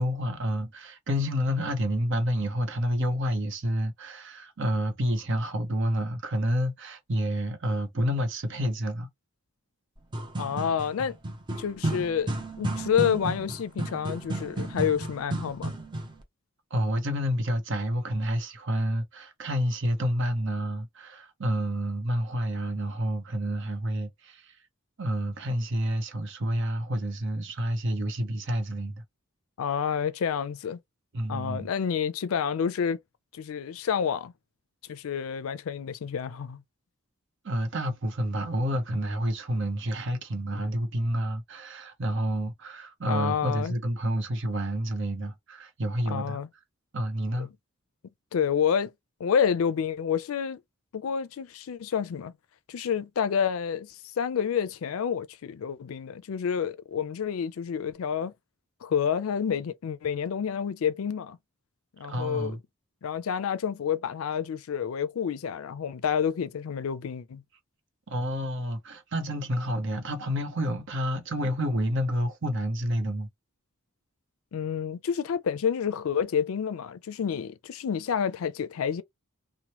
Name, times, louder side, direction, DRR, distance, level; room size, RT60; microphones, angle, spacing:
voice 1, 0.0-9.1 16.7-24.5 25.0-29.0 31.1-31.7 37.4-46.4 46.9-47.5 62.1-62.6 68.1-73.3, equal, 60° right, 0.8 m, -29 dB
sound 1, 10.0-16.2, right 1 dB, 20° right, 0.6 m, -33 dB
voice 2, 10.4-11.2 11.6-12.3 12.6-15.7 29.6-30.8 31.3-33.0 33.3-34.3 34.9-36.6 43.1-43.7 46.1-46.5 47.4-47.5 48.3-48.9 49.2-50.6 50.9-52.3 52.7-58.3 58.8-61.4 62.0-62.5 63.0-67.4 74.5-79.0, left 7 dB, 75° left, 0.4 m, -29 dB
3.0 x 2.1 x 2.8 m
head